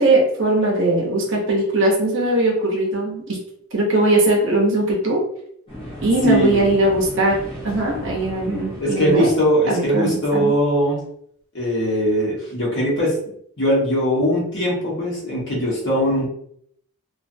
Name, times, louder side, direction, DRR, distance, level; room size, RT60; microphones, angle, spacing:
voice 1, 0.0-3.4 3.7-5.2 6.0-7.4 7.6-9.3 9.7-10.5, right 2 dB, 55° right, -1 dB, 0.8 m, -19 dB
sound 1, 5.7-9.9, equal, 25° left, 0.8 m, -36 dB
voice 2, 6.2-6.6 8.8-11.0 11.5-13.2 13.6-16.3, equal, 50° left, -5 dB, 1.2 m, -20 dB
3.0 x 2.4 x 2.6 m, 0.68 s
head